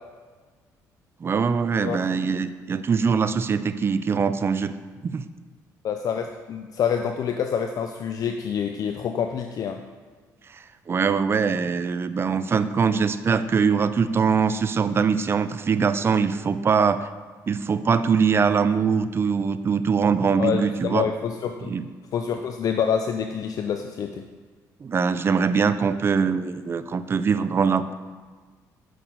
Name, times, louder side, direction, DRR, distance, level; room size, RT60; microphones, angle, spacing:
voice 1, 1.2-4.7 5.0-5.3 10.5-17.1 17.5-21.1 21.6-21.9 24.8-27.9, right 5 dB, 35° right, 13 dB, 0.5 m, -22 dB
voice 2, 5.8-9.8 20.4-21.7 22.1-24.2, left 7 dB, 55° left, 5 dB, 0.5 m, -27 dB
7.9 x 6.1 x 4.6 m, 1.5 s
cardioid pair, 95°, 7 cm